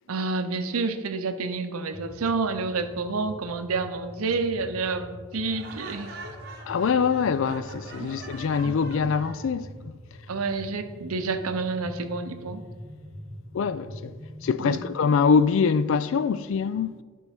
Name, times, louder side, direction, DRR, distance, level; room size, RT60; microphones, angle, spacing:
voice 1, 0.1-6.1 8.0-8.1 8.7-8.8 10.3-12.6 14.6-14.8, right 4 dB, 80° right, 0.7 m, -29 dB
sound 1, 1.9-14.9, equal, 30° right, 2.2 m, -43 dB
Laughter, 5.5-9.5, right 3 dB, 45° right, 1.0 m, -44 dB
voice 2, 6.7-9.9 13.5-17.0, left 5 dB, 60° left, 0.3 m, -24 dB
12.5 x 4.6 x 3.5 m
head